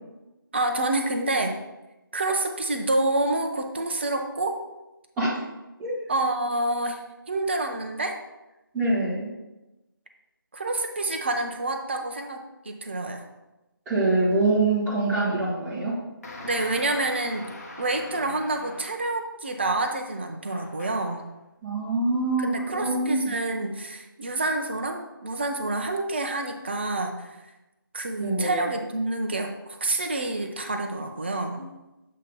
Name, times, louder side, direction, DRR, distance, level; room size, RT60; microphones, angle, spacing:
voice 1, 0.5-1.6 2.1-4.6 6.1-8.2 10.5-13.3 16.4-17.5 17.8-21.2 22.4-27.5 27.9-31.7, right 2 dB, 30° right, 4 dB, 0.5 m, -28 dB
voice 2, 8.7-9.3 13.9-15.9 21.6-22.5 22.8-23.3 28.2-28.6 31.6-31.7, right 2 dB, 5° right, -12 dB, 0.9 m, -24 dB
sound 1, 16.2-19.3 20.5-21.3, left 2 dB, 45° left, 1.1 m, -42 dB
7.4 x 2.8 x 5.2 m, 1.0 s
figure-of-eight pair, 160°, 12 cm